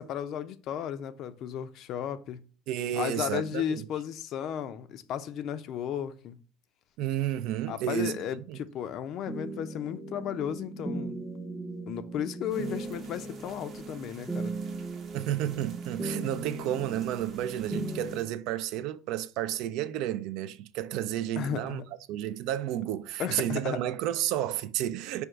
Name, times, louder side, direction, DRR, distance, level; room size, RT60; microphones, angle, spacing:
voice 1, 0.0-2.4 2.9-6.4 7.7-11.2 11.9-14.5 21.4-21.8 23.2-23.8, left 9 dB, 50° left, 0.4 m, -34 dB
voice 2, 2.7-3.8 7.0-8.2 8.5-8.6 15.1-21.8 22.1-25.2, right 12 dB, 65° right, 0.3 m, -31 dB
sound 1, 9.3-18.2, right 2 dB, ahead, 0.6 m, -38 dB
sound 2, 12.5-18.2, right 5 dB, 40° right, 0.8 m, -53 dB
5.0 x 2.3 x 4.4 m
supercardioid pair, 120°, 0 cm